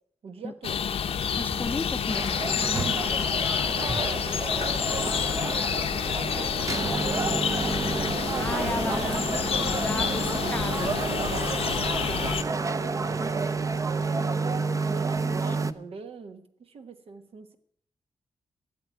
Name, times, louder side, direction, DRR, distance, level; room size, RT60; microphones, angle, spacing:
voice 1, 0.2-0.9 4.9-5.4 5.7-5.9 6.2-7.4 8.5-9.4 11.3-11.6 12.0-14.0 14.8-17.6, right 5 dB, 75° right, 7 dB, 1.4 m, -42 dB
sound 1, 0.6-12.4, left 7 dB, 80° left, 0.8 m, -28 dB
voice 2, 1.3-3.0 3.9-4.1 8.4-9.5 9.8-11.0 15.1-15.8, left 2 dB, 20° left, 12 dB, 0.6 m, -35 dB
sound 2, 2.1-15.7, right 4 dB, 35° right, 0.6 m, -30 dB
13.5 x 8.0 x 9.2 m, 0.66 s
wide cardioid pair, 110°, 10 cm